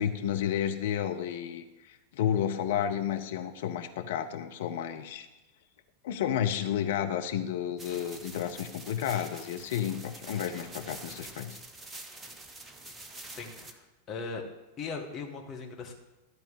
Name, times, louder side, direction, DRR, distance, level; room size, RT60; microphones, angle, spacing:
voice 1, 0.0-5.3 6.0-11.6, left 9 dB, 55° left, 6 dB, 0.8 m, -31 dB
sound 1, 7.8-13.7, right 2 dB, 15° right, 1.0 m, -46 dB
voice 2, 13.3-14.4 14.8-15.9, left 4 dB, 25° left, 1 dB, 1.8 m, -39 dB
12.5 x 4.3 x 7.4 m, 1.1 s
figure-of-eight pair, 90°, 0 cm